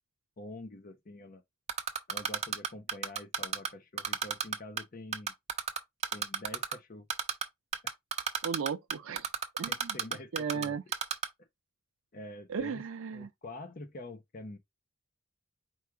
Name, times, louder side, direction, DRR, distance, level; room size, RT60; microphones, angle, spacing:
voice 1, 0.4-1.4 2.1-5.3 6.1-7.1 7.8-7.9 9.7-10.8 11.4-11.5 12.1-12.8 13.1-14.6, left 1 dB, 45° left, 0.8 m, -46 dB
Typing, 1.7-3.7 4.0-4.8 5.1-6.7 7.1-7.4 7.7-10.6 10.9-11.3, right 7 dB, 35° right, 0.7 m, -31 dB
voice 2, 8.4-9.3 9.6-10.0 10.3-10.8 12.5-13.3, right 6 dB, 80° right, 0.5 m, -35 dB
4.6 x 2.4 x 4.6 m
head